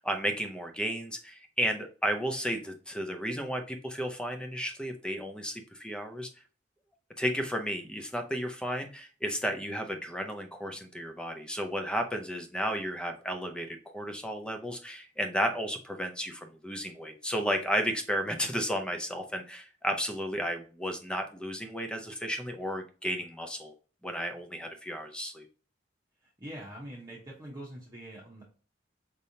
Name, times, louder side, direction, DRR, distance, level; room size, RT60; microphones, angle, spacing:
voice 1, 0.0-6.3 7.2-23.7 24.0-25.5, equal, 5° left, 5 dB, 0.6 m, -33 dB
voice 2, 26.4-28.4, right 1 dB, 20° right, -6 dB, 1.1 m, -43 dB
5.5 x 3.4 x 2.8 m, 0.37 s
head